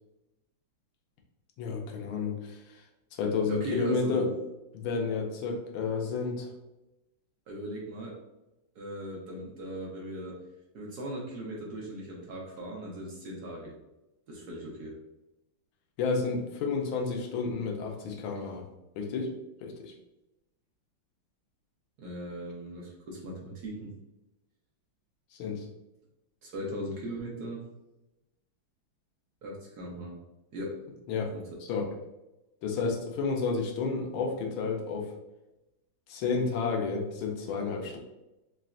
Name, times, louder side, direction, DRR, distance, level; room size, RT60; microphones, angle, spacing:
voice 1, 1.6-2.8 3.2-4.3 4.7-6.5 16.0-18.6 19.0-19.3 19.6-19.9 25.3-25.6 31.1-31.3 31.7-31.9 32.6-35.1 36.1-38.0, left 4 dB, 75° left, 2 dB, 1.5 m, -31 dB
voice 2, 3.5-4.2 7.5-8.2 8.8-10.4 10.7-13.8 14.3-15.0 22.0-23.9 26.4-27.6 29.4-30.2 30.5-30.8 31.3-31.5, equal, 65° right, -3 dB, 1.1 m, -38 dB
4.0 x 3.3 x 2.4 m, 0.95 s
omnidirectional pair, 2.3 m